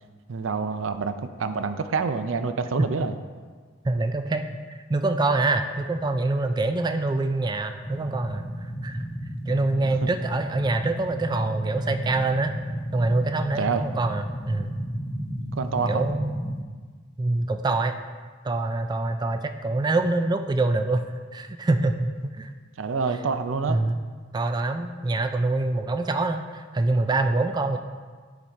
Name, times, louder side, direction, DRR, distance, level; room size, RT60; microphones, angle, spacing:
voice 1, 0.3-1.1 1.4-3.1 9.8-9.9 13.6-13.8 15.6-16.1 22.8-23.8, right 5 dB, 90° right, 9 dB, 0.5 m, -27 dB
voice 2, 3.8-9.0 9.5-12.5 12.9-14.7 15.9-16.3 17.2-18.0 18.4-22.5 23.7-24.0 24.3-27.8, right 2 dB, 20° right, 7 dB, 0.3 m, -25 dB
sound 1, 7.8-16.6, equal, 55° left, 1.0 m, -33 dB
10.0 x 4.0 x 4.5 m, 1.6 s
head